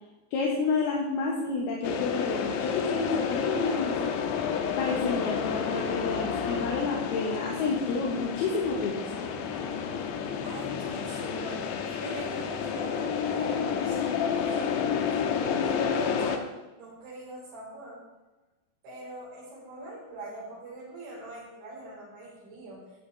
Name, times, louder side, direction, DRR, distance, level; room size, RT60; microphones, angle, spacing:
voice 1, 0.3-4.4 4.8-9.3, left 4 dB, 70° left, -2 dB, 3.0 m, -30 dB
sound 1, 1.8-16.4, left 6 dB, 85° left, 3.1 m, -30 dB
voice 2, 10.4-15.0 15.6-16.5 16.7-18.0 18.8-22.8, right 1 dB, 85° right, -7 dB, 7.0 m, -42 dB
15.0 x 8.8 x 3.5 m, 1.1 s
omnidirectional pair, 5.2 m